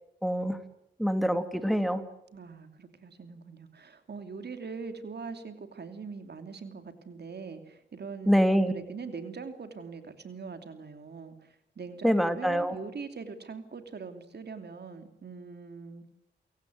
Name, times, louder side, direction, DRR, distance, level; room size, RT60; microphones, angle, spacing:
voice 1, 0.2-0.6 1.0-2.0 8.3-8.7 12.0-12.7, equal, ahead, 8 dB, 2.6 m, -25 dB
voice 2, 2.3-16.1, right 5 dB, 60° right, 8 dB, 2.9 m, -42 dB
28.5 x 17.0 x 9.5 m, 0.81 s
cardioid pair, 60°, 19 cm